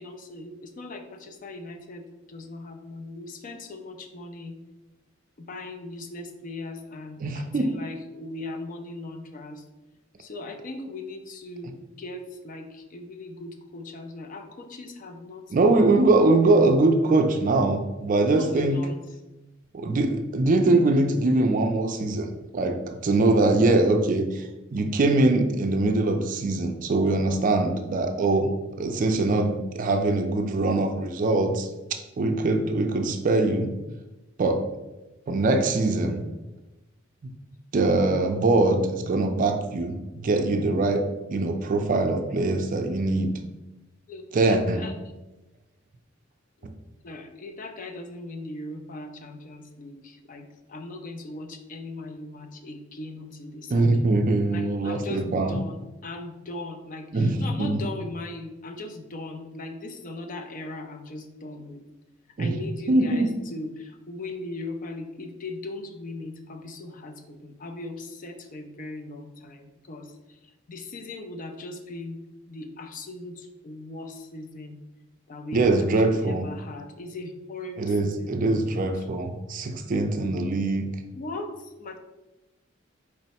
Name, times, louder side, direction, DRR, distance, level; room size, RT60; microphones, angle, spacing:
voice 1, 0.0-4.6 5.4-9.6 10.2-16.0 16.4-16.6 18.3-19.0 44.1-44.9 47.0-53.9 54.5-61.8 62.4-70.4 70.7-72.2 72.5-74.8 75.3-78.3 79.0-79.1 81.1-82.0, left 2 dB, 40° left, 5 dB, 0.4 m, -39 dB
voice 2, 7.2-7.7 15.5-18.8 19.7-28.5 28.8-31.7 32.2-33.7 34.4-34.6 35.3-36.2 37.2-37.3 37.7-41.0 41.3-43.3 44.3-44.8 53.7-55.6 57.1-57.8 62.4-62.6 62.9-63.3 75.5-76.5 77.8-80.9, right 2 dB, 40° right, 6 dB, 0.4 m, -22 dB
4.5 x 2.1 x 4.1 m, 1.0 s
head